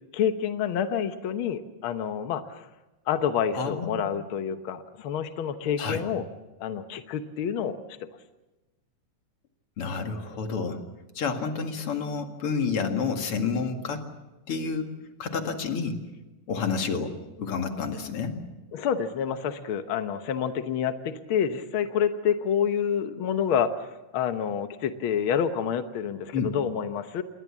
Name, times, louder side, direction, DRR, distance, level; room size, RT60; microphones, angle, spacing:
voice 1, 0.1-2.7 3.1-6.2 6.6-7.8 18.7-27.2, left 8 dB, 75° left, 9 dB, 1.2 m, -28 dB
voice 2, 3.5-4.1 5.8-6.0 9.8-10.8 11.2-14.0 14.5-14.9 15.2-16.0 16.5-18.4 26.3-26.5, left 5 dB, 50° left, 5 dB, 2.7 m, -29 dB
28.0 x 21.5 x 7.3 m, 1.1 s
omnidirectional pair, 3.7 m